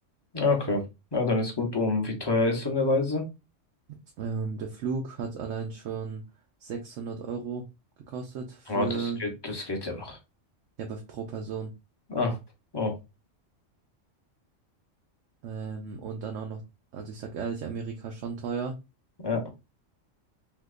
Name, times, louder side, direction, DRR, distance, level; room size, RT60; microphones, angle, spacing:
voice 1, 0.3-0.8 1.1-3.2 8.7-10.2 12.1-12.4 12.7-13.0 19.2-19.4, left 3 dB, 25° left, 2 dB, 0.7 m, -27 dB
voice 2, 4.2-6.2 6.6-7.7 8.1-9.2 10.8-11.7 15.4-16.6 16.9-18.8, right 5 dB, 75° right, 2 dB, 1.0 m, -34 dB
3.6 x 2.9 x 2.4 m, 0.25 s
omnidirectional pair, 1.3 m